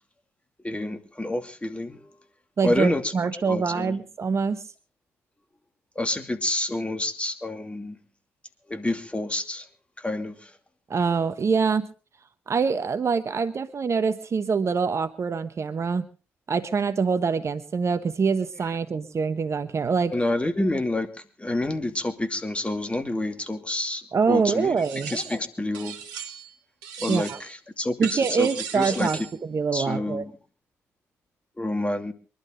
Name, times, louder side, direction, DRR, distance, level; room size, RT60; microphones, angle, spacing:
voice 1, 0.6-2.2 2.6-3.1 3.5-4.0 6.0-8.0 8.7-9.6 10.0-10.5 20.1-24.7 25.1-26.0 27.0-29.3 29.7-30.3 31.6-32.1, left 1 dB, 15° left, 7 dB, 2.6 m, -28 dB
voice 2, 2.6-4.6 10.9-11.9 12.5-16.1 16.5-20.1 24.1-25.1 27.1-27.4 28.0-30.2, right 5 dB, 40° right, 11 dB, 1.1 m, -25 dB
sound 1, 24.8-25.5 25.7-26.5 26.8-27.5 28.0-29.4, right 8 dB, 75° right, 1.6 m, -37 dB
23.5 x 12.0 x 3.9 m, 0.37 s
hypercardioid pair, 45°, 7 cm